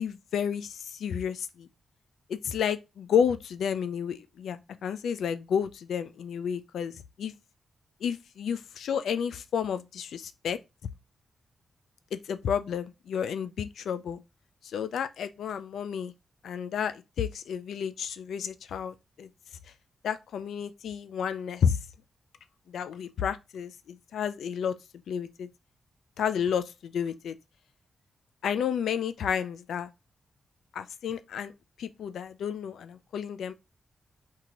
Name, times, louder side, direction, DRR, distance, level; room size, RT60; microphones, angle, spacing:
voice 1, 0.0-1.7 2.3-6.9 7.2-7.3 8.0-10.6 12.3-14.2 14.6-16.1 16.4-19.3 20.0-21.8 22.7-24.7 25.1-25.5 26.2-27.3 28.4-29.9 30.7-31.5 31.8-33.5, left 7 dB, 85° left, 0.4 m, -31 dB
4.6 x 2.9 x 3.7 m
cardioid pair, 60°, 0 cm